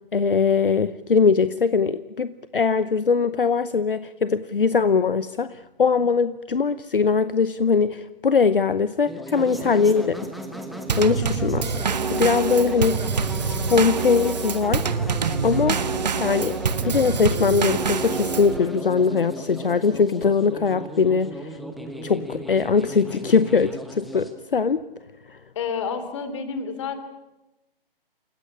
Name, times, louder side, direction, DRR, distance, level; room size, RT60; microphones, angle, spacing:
voice 1, 0.1-10.2 11.0-11.6 12.1-13.0 13.5-14.8 15.4-15.9 16.2-16.6 16.8-21.5 22.0-24.8 25.3-25.4, left 5 dB, 65° left, 15 dB, 0.9 m, -21 dB
sound 1, 9.1-24.3, equal, ahead, 1.1 m, -35 dB
Drum kit / Snare drum / Bass drum, 10.9-18.6, right 5 dB, 45° right, 1.4 m, -26 dB
voice 2, 25.5-27.0, left 6 dB, 30° left, 10 dB, 3.0 m, -29 dB
28.5 x 15.5 x 9.9 m, 1.0 s
figure-of-eight pair, 135°, 29 cm